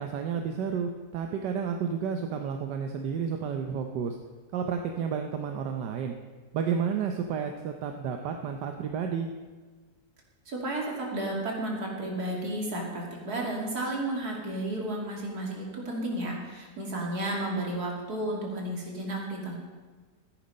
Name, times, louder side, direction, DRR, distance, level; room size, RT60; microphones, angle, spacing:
voice 1, 0.0-4.2 4.5-6.1 6.5-9.3, right 7 dB, 85° right, 4 dB, 1.4 m, -31 dB
voice 2, 10.5-19.5, right 1 dB, 65° right, -1 dB, 3.0 m, -32 dB
13.5 x 10.0 x 5.4 m, 1.4 s
omnidirectional pair, 1.8 m